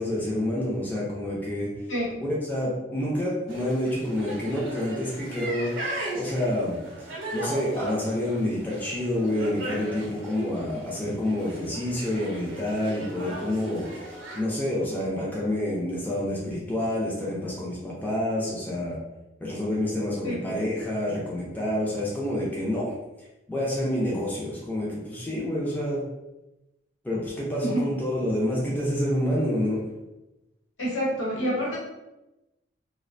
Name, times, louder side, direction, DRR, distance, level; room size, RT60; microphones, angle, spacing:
voice 1, 0.0-1.7 2.2-5.7 6.1-6.8 7.3-19.0 19.4-22.9 23.5-26.0 27.0-29.8, left 1 dB, 10° left, -6 dB, 0.4 m, -28 dB
voice 2, 1.9-2.2 20.2-20.5 27.6-27.8 30.8-31.8, equal, 80° left, -5 dB, 0.9 m, -27 dB
sound 1, 3.5-14.4, right 1 dB, 80° right, 0.5 m, -37 dB
2.4 x 2.1 x 2.5 m, 0.98 s
head